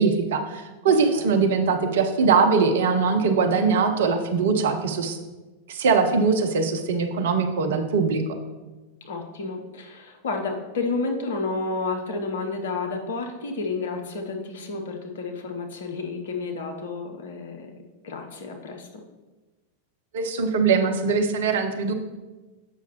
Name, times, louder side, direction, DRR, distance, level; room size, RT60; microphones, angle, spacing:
voice 1, 0.0-5.2 5.7-8.2 20.1-21.9, right 5 dB, 60° right, 6 dB, 0.6 m, -21 dB
voice 2, 0.9-1.2 9.0-17.7 18.0-18.9, left 3 dB, 60° left, 3 dB, 0.9 m, -31 dB
7.5 x 5.8 x 2.9 m, 1.2 s
figure-of-eight pair, 90°, 0 cm